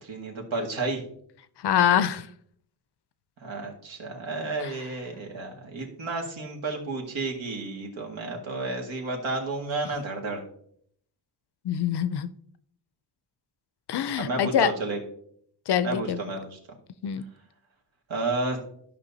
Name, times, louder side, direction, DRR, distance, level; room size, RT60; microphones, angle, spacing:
voice 1, 0.0-1.0 3.4-10.4 14.2-15.0 15.8-16.6 18.1-18.6, right 2 dB, 70° right, 1 dB, 2.0 m, -31 dB
voice 2, 1.6-2.3 4.6-4.7 11.6-12.3 13.9-14.7 15.7-16.2 17.0-17.2, left 9 dB, 55° left, 14 dB, 0.6 m, -24 dB
13.5 x 5.5 x 2.7 m, 0.66 s
wide cardioid pair, 125°, 47 cm